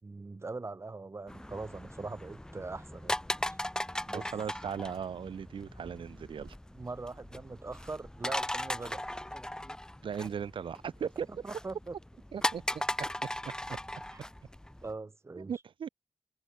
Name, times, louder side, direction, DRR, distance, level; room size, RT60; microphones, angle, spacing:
voice 1, 0.0-3.2 3.5-3.6 4.1-4.3 6.7-9.0 11.3-12.0 14.1-14.2 14.8-15.5, right 3 dB, 30° right, 5.8 m, -41 dB
sound 1, 1.3-14.9, left 1 dB, 10° left, 3.1 m, -38 dB
voice 2, 4.1-6.5 10.0-11.4 12.3-12.8 13.4-13.8 15.5-15.9, right 7 dB, 80° right, 6.6 m, -38 dB
wide cardioid pair, 100°, 9 cm